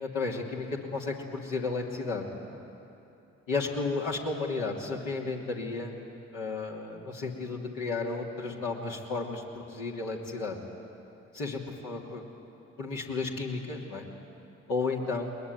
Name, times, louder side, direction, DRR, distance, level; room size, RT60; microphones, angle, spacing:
voice 1, 0.0-2.6 3.5-5.9 6.3-10.6 11.3-12.2 12.8-14.1 14.7-15.3, left 3 dB, 70° left, -1 dB, 3.0 m, -33 dB
21.0 x 21.0 x 9.4 m, 2.8 s
figure-of-eight pair, 40°, 35 cm